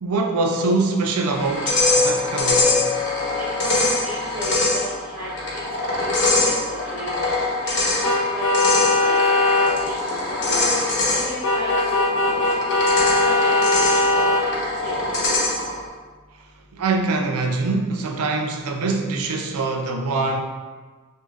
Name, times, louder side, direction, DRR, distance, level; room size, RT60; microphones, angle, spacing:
voice 1, 0.0-2.7 16.7-20.4, right 3 dB, 85° right, 4 dB, 0.5 m, -23 dB
sound 1, 1.3-15.8, left 2 dB, 55° left, 1.0 m, -23 dB
voice 2, 3.5-6.3 6.7-7.3 7.6-10.7 11.1-12.4 12.7-12.8 13.2-13.5 13.9-14.0 14.4-15.3, equal, 20° right, -15 dB, 1.3 m, -35 dB
sound 2, 8.0-9.7 11.4-14.4, left 2 dB, 70° left, 0.6 m, -19 dB
6.2 x 2.6 x 2.5 m, 1.4 s
head